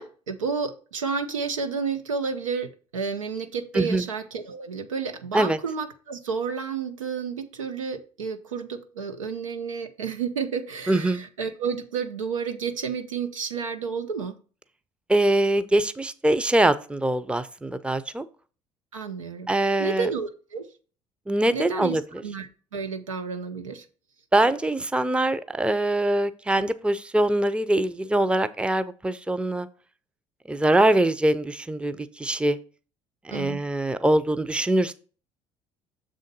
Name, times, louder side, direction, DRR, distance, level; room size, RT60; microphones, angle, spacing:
voice 1, 0.0-14.4 18.9-19.5 19.8-20.6 21.5-23.8 33.3-33.6, right 5 dB, 85° right, 6 dB, 0.7 m, -31 dB
voice 2, 3.7-4.1 5.3-5.6 10.9-11.2 15.1-18.2 19.5-20.1 21.3-22.0 24.3-29.7 30.5-32.6 33.2-34.9, right 1 dB, 5° right, 12 dB, 0.6 m, -23 dB
6.9 x 3.8 x 5.2 m, 0.37 s
figure-of-eight pair, 55°, 16 cm